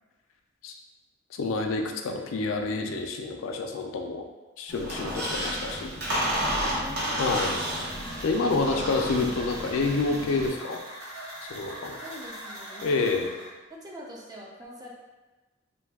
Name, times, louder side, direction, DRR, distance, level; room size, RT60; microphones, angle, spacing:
voice 1, 1.3-4.2 4.6-5.9 7.2-7.6 8.2-10.8 11.5-12.0 12.8-13.3, left 3 dB, 85° left, 3 dB, 0.4 m, -28 dB
Squeak, 4.7-10.5, equal, 50° right, 0.7 m, -31 dB
sound 1, 6.4-13.5, equal, 90° right, 0.9 m, -43 dB
voice 2, 6.5-7.6 12.0-13.3 13.7-14.9, equal, 20° right, -3 dB, 0.4 m, -44 dB
2.6 x 2.2 x 3.4 m, 1.2 s
head